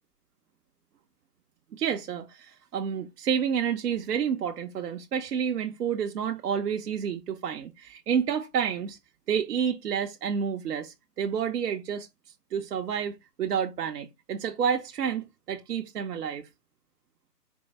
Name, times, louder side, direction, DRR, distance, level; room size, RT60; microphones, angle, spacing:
voice 1, 1.7-9.0 9.3-12.1 12.5-16.5, right 7 dB, 70° right, 0.6 m, -29 dB
4.4 x 2.1 x 4.1 m
hypercardioid pair, 145°, 48 cm